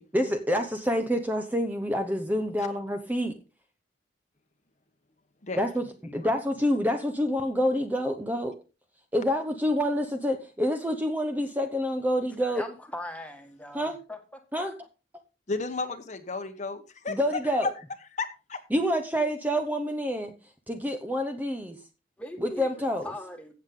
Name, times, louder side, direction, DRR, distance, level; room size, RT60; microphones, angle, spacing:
voice 1, 0.1-3.3 5.6-5.8 6.1-8.5 9.1-12.6 13.7-14.0 14.5-14.7 17.1-17.7 18.7-20.3 20.7-21.8 22.4-23.1, equal, 10° right, 0.9 m, -27 dB
voice 2, 12.4-14.2 22.2-23.5, left 1 dB, 5° left, 1.8 m, -40 dB
voice 3, 15.5-17.2 17.4-17.7 18.1-18.6, left 3 dB, 40° left, 1.1 m, -33 dB
15.5 x 7.3 x 3.8 m
head